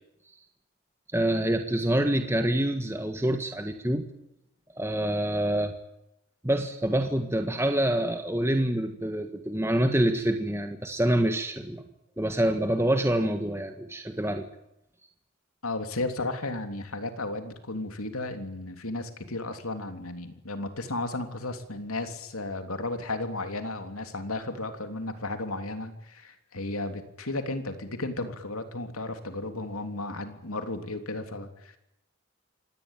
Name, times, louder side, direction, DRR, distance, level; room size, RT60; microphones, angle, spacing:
voice 1, 1.1-4.0 4.8-5.7 6.4-11.8 12.2-14.4, right 1 dB, 10° right, 6 dB, 1.6 m, -26 dB
voice 2, 15.6-31.8, left 2 dB, 85° left, 7 dB, 3.2 m, -34 dB
26.0 x 19.0 x 9.1 m, 0.83 s
head